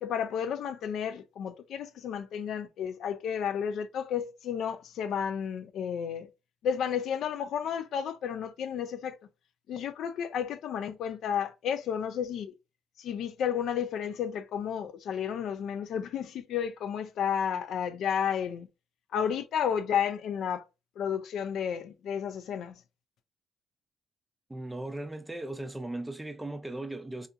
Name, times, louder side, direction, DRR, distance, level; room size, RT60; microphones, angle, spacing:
voice 1, 0.0-6.3 6.6-9.2 9.7-12.5 13.0-18.7 19.1-20.6 21.0-22.7, left 8 dB, 75° left, 0.3 m, -32 dB
voice 2, 24.5-27.3, right 2 dB, 10° right, 0.4 m, -37 dB
2.7 x 2.4 x 2.3 m
cardioid pair, 90°, 0 cm